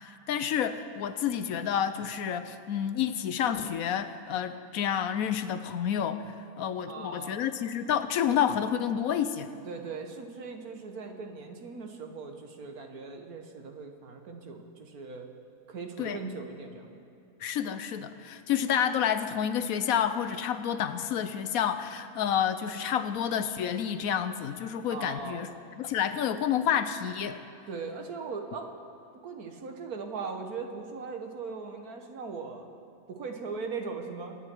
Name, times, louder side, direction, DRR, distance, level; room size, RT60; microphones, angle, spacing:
voice 1, 0.0-6.3 6.6-9.5 16.0-16.2 17.4-25.5 25.8-27.4, left 9 dB, 70° left, 11 dB, 1.0 m, -29 dB
voice 2, 6.8-7.4 9.6-15.3 15.7-16.9 24.9-25.5 27.7-28.7 29.2-32.7 33.1-34.4, right 4 dB, 70° right, 4 dB, 1.7 m, -39 dB
23.5 x 9.2 x 4.5 m, 2.8 s
omnidirectional pair, 1.6 m